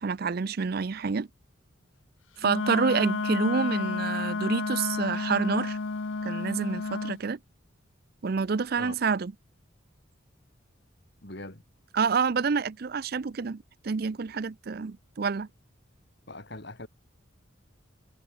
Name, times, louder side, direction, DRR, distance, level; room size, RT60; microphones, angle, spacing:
voice 1, 0.0-1.3 2.4-5.8 6.2-7.4 8.2-9.3 11.9-15.5, right 5 dB, 50° right, 0.5 m, -28 dB
Wind instrument woodwind instrument, 2.4-7.2, left 4 dB, 70° left, 0.7 m, -31 dB
voice 2, 11.2-11.6 16.3-16.9, left 2 dB, 55° left, 3.6 m, -41 dB
head